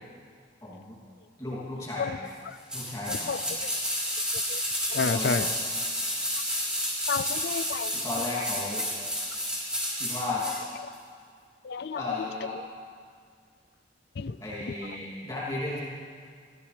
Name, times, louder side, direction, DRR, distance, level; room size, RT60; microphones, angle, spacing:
voice 1, 0.6-0.9 1.4-2.1 2.7-3.4 5.0-5.5 7.9-8.9 10.0-10.5 11.9-12.6 14.4-15.8, left 2 dB, 20° left, -7 dB, 2.8 m, -34 dB
sound 1, 2.7-10.6 10.9-11.0, equal, 5° right, 3.8 m, -31 dB
voice 2, 3.1-3.7 4.5-4.6 4.9-5.5 7.1-7.9 11.6-12.0 14.2-14.4, left 5 dB, 65° left, 15 dB, 0.5 m, -31 dB
21.5 x 15.5 x 3.4 m, 2.1 s
head